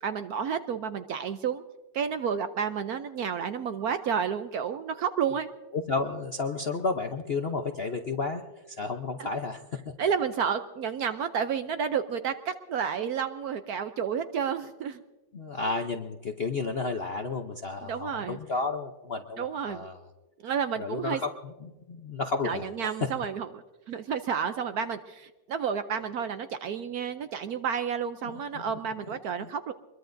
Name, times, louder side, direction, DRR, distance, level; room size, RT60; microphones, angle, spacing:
voice 1, 0.0-1.6 1.9-5.5 9.2-9.3 10.0-15.0 15.6-15.8 17.8-18.4 19.4-19.9 20.4-21.2 22.4-23.5 23.9-29.7, right 7 dB, 65° right, 9 dB, 1.0 m, -31 dB
voice 2, 5.7-8.4 8.8-9.6 15.3-20.0 20.8-21.3 21.6-22.7 28.5-28.6 29.4-29.5, left 3 dB, 55° left, 4 dB, 0.6 m, -32 dB
24.0 x 22.0 x 2.6 m, 1.2 s
omnidirectional pair, 2.1 m